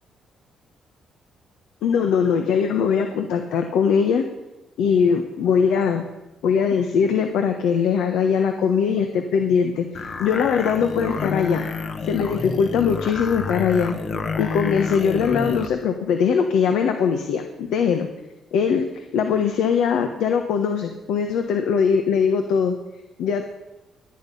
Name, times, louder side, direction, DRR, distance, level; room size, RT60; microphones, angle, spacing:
voice 1, 1.8-4.2 4.8-6.0 6.4-11.7 12.0-13.9 14.4-18.1 18.5-22.7 23.2-23.4, left 6 dB, 85° left, 6 dB, 1.2 m, -21 dB
sound 1, 9.9-15.7, left 4 dB, 50° left, 1.2 m, -29 dB
21.0 x 8.8 x 5.5 m, 1.0 s
cardioid pair, 90°, 0 cm